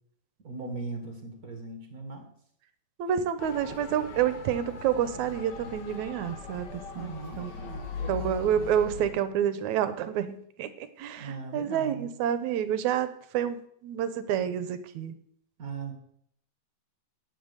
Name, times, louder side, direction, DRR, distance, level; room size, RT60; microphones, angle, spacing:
voice 1, 0.4-2.3 6.9-8.7 11.2-12.1 15.6-15.9, right 3 dB, 35° right, 5 dB, 1.6 m, -39 dB
voice 2, 3.0-7.5 8.1-15.1, right 9 dB, 70° right, 13 dB, 2.0 m, -29 dB
Motor vehicle (road) / Siren, 3.4-9.1, left 5 dB, 55° left, 1.2 m, -40 dB
10.0 x 7.7 x 8.1 m, 0.67 s
omnidirectional pair, 3.8 m